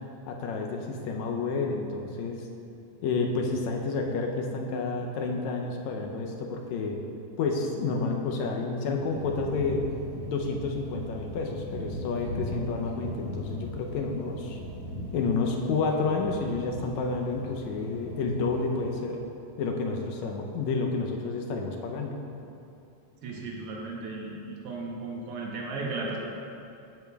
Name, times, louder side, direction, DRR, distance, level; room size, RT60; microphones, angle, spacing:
voice 1, 0.3-2.4 3.0-7.0 7.4-9.9 10.2-14.6 15.1-19.2 19.6-22.2, left 4 dB, 75° left, 2 dB, 1.7 m, -30 dB
sound 1, 9.0-19.1, equal, 55° left, 1.8 m, -39 dB
voice 2, 23.2-26.2, right 3 dB, 80° right, -1 dB, 1.3 m, -35 dB
10.5 x 8.2 x 2.3 m, 2.7 s
omnidirectional pair, 3.7 m